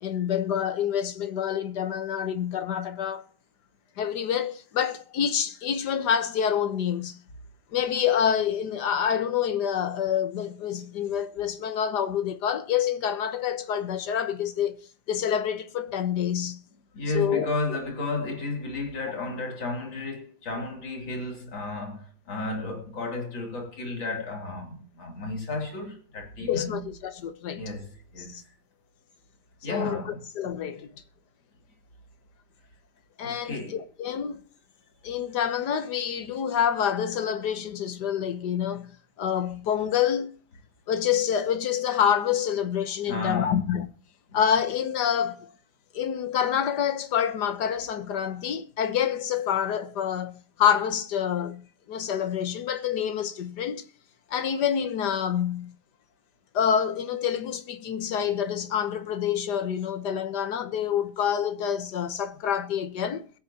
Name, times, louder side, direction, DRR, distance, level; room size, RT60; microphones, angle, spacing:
voice 1, 0.0-3.2 4.0-7.2 7.7-14.8 15.1-16.6 17.1-17.5 26.4-27.6 28.2-28.4 29.7-30.9 33.2-34.4 35.0-40.3 40.9-43.9 44.3-45.5 45.9-53.8 54.3-55.7 56.5-63.2, left 8 dB, 65° left, 1.6 m, -27 dB
voice 2, 16.9-26.8 27.5-28.4 29.6-30.3 33.2-33.8 43.1-43.7 44.3-44.4, left 2 dB, 80° left, 3.8 m, -33 dB
21.5 x 8.5 x 2.9 m
omnidirectional pair, 2.0 m